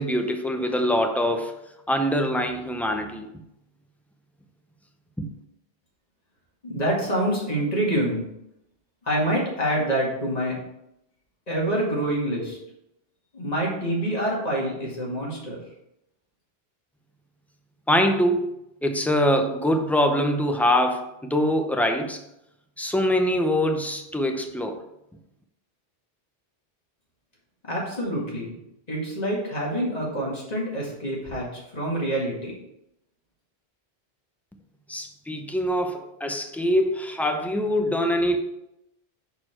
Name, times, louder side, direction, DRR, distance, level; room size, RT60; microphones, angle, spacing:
voice 1, 0.0-1.6 1.9-3.3 5.2-5.3 17.9-18.5 18.8-22.2 22.8-24.8 34.9-38.4, equal, ahead, 4 dB, 0.5 m, -24 dB
voice 2, 6.6-8.3 9.0-10.6 11.5-12.6 13.3-15.6 27.6-28.5 28.9-32.5, right 1 dB, 40° left, -3 dB, 2.1 m, -26 dB
6.5 x 4.7 x 4.4 m, 0.84 s
omnidirectional pair, 1.0 m